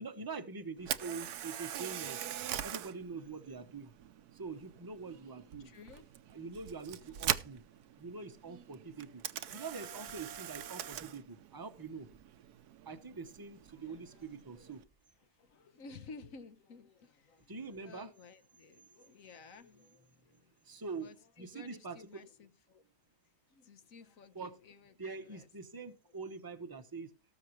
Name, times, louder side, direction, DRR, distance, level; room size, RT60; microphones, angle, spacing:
voice 1, 0.0-2.2 2.6-3.9 4.3-5.7 6.3-7.6 8.0-9.2 9.5-12.1 12.8-14.8 17.5-18.1 20.3-22.2 24.3-24.6 25.0-27.1, right 4 dB, 15° right, 0.8 m, -44 dB
Camera, 0.8-14.8, right 11 dB, 70° right, 1.2 m, -42 dB
voice 2, 5.2-6.4 7.0-7.1 9.4-10.1 13.7-14.7 15.2-22.9 23.2-25.5 26.1-26.2, left 4 dB, 60° left, 1.3 m, -56 dB
18.5 x 7.2 x 3.1 m
omnidirectional pair, 1.8 m